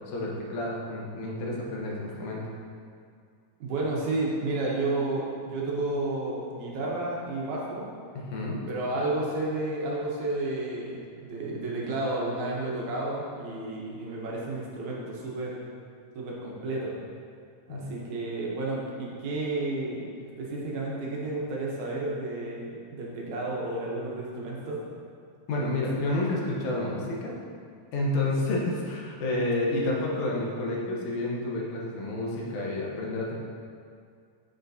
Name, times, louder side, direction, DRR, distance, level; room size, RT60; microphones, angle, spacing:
voice 1, 0.1-2.4 8.1-8.6 17.7-17.8 25.5-27.3 27.9-33.3, left 2 dB, 75° left, -3 dB, 2.3 m, -30 dB
voice 2, 3.6-7.9 8.7-15.6 16.2-17.0 17.7-24.8, right 2 dB, 75° right, -4 dB, 2.3 m, -31 dB
7.4 x 6.5 x 2.7 m, 2.2 s
omnidirectional pair, 3.5 m